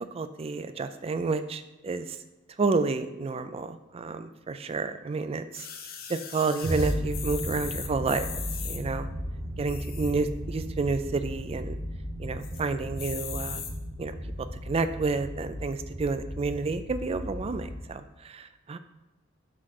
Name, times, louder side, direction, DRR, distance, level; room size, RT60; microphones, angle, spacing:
voice 1, 0.1-2.2 2.6-5.7 6.1-9.1 9.6-11.8 12.2-13.6 14.0-18.8, right 4 dB, 30° right, 10 dB, 0.4 m, -30 dB
sound 1, 5.5-8.8 9.6-10.3 10.7-10.8 11.0-11.1 11.5-11.9 12.4-12.6 13.0-13.7 14.4-14.5, left 7 dB, 50° left, 0.7 m, -39 dB
sound 2, 6.6-17.8, equal, 85° right, 1.3 m, -35 dB
6.1 x 3.2 x 5.9 m, 1.1 s
head